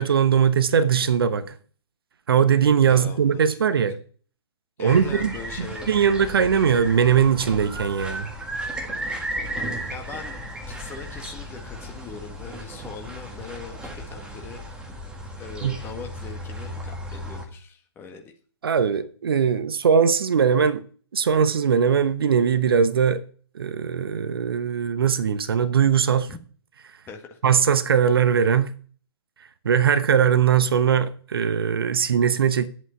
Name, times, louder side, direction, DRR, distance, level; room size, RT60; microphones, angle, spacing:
voice 1, 0.0-1.6 2.3-4.0 4.8-8.3 15.6-15.8 18.6-20.8 21.1-23.2 23.5-26.3 27.4-28.7 29.6-32.7, right 7 dB, 60° right, 0.9 m, -20 dB
voice 2, 2.9-3.4 4.8-5.9 9.9-10.4 10.7-14.6 15.4-18.3 26.3-26.4 27.1-27.4, left 5 dB, 15° left, 1.7 m, -40 dB
sound 1, 4.9-17.4, right 1 dB, 5° right, 1.8 m, -35 dB
11.0 x 8.2 x 4.5 m
figure-of-eight pair, 125°, 14 cm